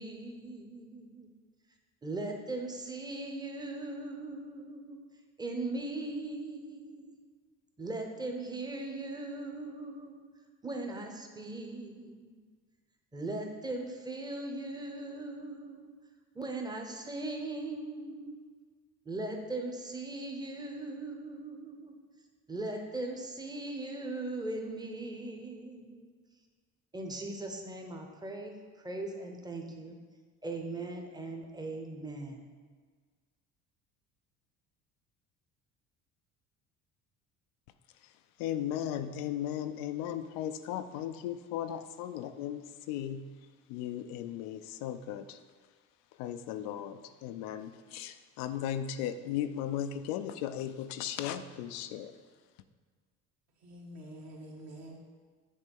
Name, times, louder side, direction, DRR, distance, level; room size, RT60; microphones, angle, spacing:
voice 1, 0.0-1.3 2.0-5.0 5.4-7.1 7.8-10.2 10.6-12.3 13.1-15.9 16.3-18.4 19.0-22.0 22.5-26.1 26.9-30.0 30.4-32.5, right 2 dB, 10° right, 2 dB, 0.9 m, -39 dB
voice 2, 38.4-42.6 42.9-43.2 43.7-45.4 46.2-52.1, left 10 dB, 85° left, 10 dB, 0.5 m, -36 dB
voice 3, 53.6-55.0, right 1 dB, 50° right, -1 dB, 1.6 m, -47 dB
7.5 x 3.3 x 5.4 m, 1.5 s
supercardioid pair, 90°, 35 cm